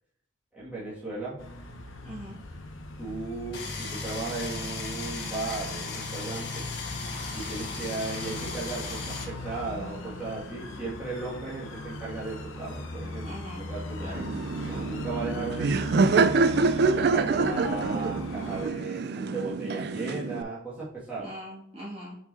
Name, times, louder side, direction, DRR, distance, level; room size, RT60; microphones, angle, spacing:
voice 1, 0.5-1.4 3.0-6.7 7.3-13.3 13.6-16.3 16.9-21.3, right 3 dB, 5° right, -10 dB, 2.3 m, -36 dB
sound 1, 1.4-18.7, left 1 dB, 75° left, 0.9 m, -39 dB
voice 2, 2.0-2.4 13.2-13.7 14.0-14.3 21.1-22.2, equal, 30° right, -7 dB, 2.5 m, -41 dB
sound 2, 3.5-9.2, left 4 dB, 55° left, 1.7 m, -37 dB
Laughter, 14.1-20.4, right 4 dB, 50° right, 0.4 m, -26 dB
6.1 x 5.5 x 2.9 m, 0.75 s
head